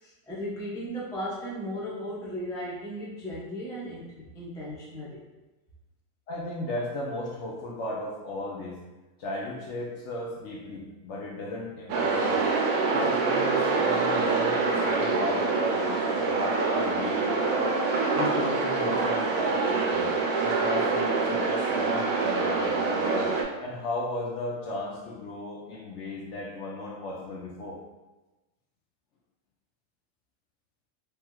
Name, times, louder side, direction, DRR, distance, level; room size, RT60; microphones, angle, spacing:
voice 1, 0.0-5.2, equal, 5° left, -7 dB, 0.3 m, -36 dB
voice 2, 6.3-8.8 9.2-12.4 12.9-17.7 18.1-20.1 20.4-23.3 23.6-27.8, left 1 dB, 65° left, -3 dB, 0.8 m, -35 dB
sound 1, 11.9-23.4, right 4 dB, 75° right, 1.0 m, -26 dB
3.3 x 3.0 x 2.2 m, 1.1 s
omnidirectional pair, 1.5 m